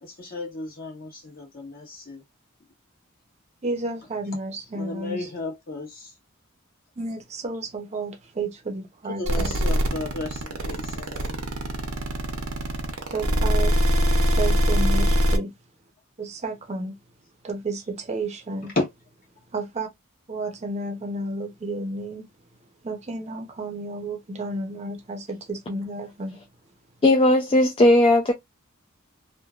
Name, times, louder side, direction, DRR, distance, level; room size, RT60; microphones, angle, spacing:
voice 1, 0.0-2.2 4.7-6.1 9.1-11.4 14.6-14.7 18.6-18.9, left 2 dB, 45° left, 1.3 m, -33 dB
voice 2, 3.6-5.2 7.0-9.5 13.1-13.7 14.4-15.5 16.2-17.0 17.4-18.7 19.5-19.9 20.3-22.3 22.8-26.4, right 2 dB, 30° right, 0.6 m, -31 dB
sound 1, 9.3-15.4, equal, 90° right, 0.7 m, -22 dB
voice 3, 27.0-28.3, left 1 dB, 25° left, 0.4 m, -17 dB
3.1 x 2.1 x 2.4 m
head